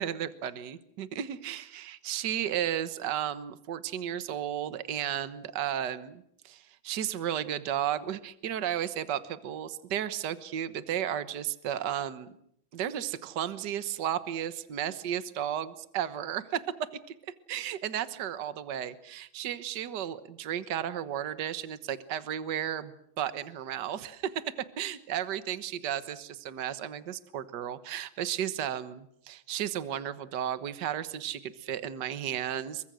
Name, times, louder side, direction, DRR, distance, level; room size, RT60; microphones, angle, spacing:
voice 1, 0.0-12.3 12.7-16.6 17.5-32.9, right 10 dB, 60° right, 12 dB, 1.7 m, -34 dB
29.0 x 23.5 x 6.4 m, 0.71 s
omnidirectional pair, 2.2 m